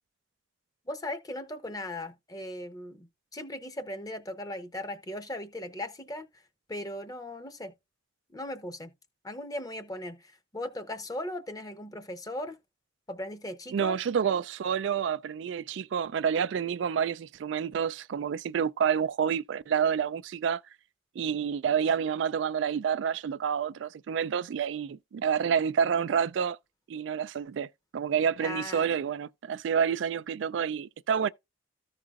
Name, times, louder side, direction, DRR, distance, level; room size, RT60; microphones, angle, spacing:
voice 1, 0.9-6.3 6.7-7.7 8.3-8.9 9.2-12.6 13.1-14.0 28.4-28.9, left 1 dB, 20° left, 0.8 m, -38 dB
voice 2, 13.7-20.6 21.2-26.6 26.9-31.3, right 7 dB, 75° right, 0.3 m, -28 dB
14.0 x 4.9 x 2.4 m
head